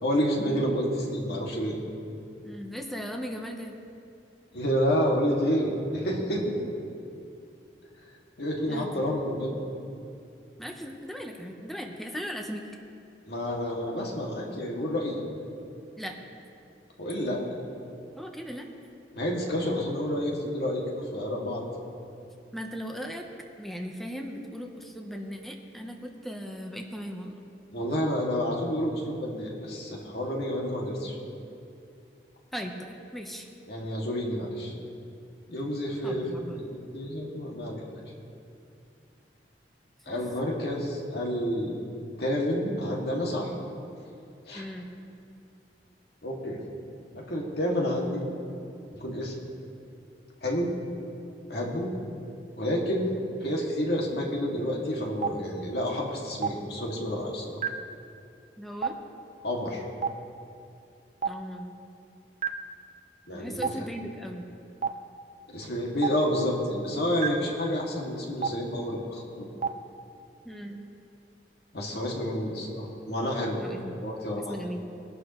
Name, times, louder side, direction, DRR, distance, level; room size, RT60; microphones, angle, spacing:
voice 1, 0.0-1.8 4.5-6.5 8.4-9.6 13.3-15.2 17.0-17.4 19.1-21.7 27.7-31.2 33.7-34.7 35.5-37.8 40.1-41.8 42.2-43.5 44.5-44.7 46.2-46.6 47.1-48.2 48.9-49.3 50.4-50.7 51.5-51.9 52.6-53.1 53.4-57.6 59.4-59.8 63.3-63.8 65.5-69.5 71.7-73.6 74.0-74.6, equal, 65° left, -2 dB, 2.3 m, -29 dB
voice 2, 2.4-3.8 8.7-9.0 10.6-12.6 16.0-16.2 18.2-18.7 22.5-23.3 23.6-27.4 32.5-33.5 36.0-36.6 40.1-40.2 44.5-44.9 58.6-59.0 61.2-61.7 63.3-64.5 70.4-70.8 73.6-73.9 74.4-74.9, equal, ahead, 1 dB, 0.9 m, -38 dB
Stream, 55.2-55.3 56.4-56.5 57.6-57.7 58.8-58.9 60.0-60.1 61.2-61.3 62.4-62.5 63.6-63.7 64.8-64.9 66.0-66.1 67.2-67.3 68.4-68.5 69.6-69.7, right 7 dB, 40° right, 0.7 m, -25 dB
21.5 x 11.5 x 3.1 m, 2.6 s
head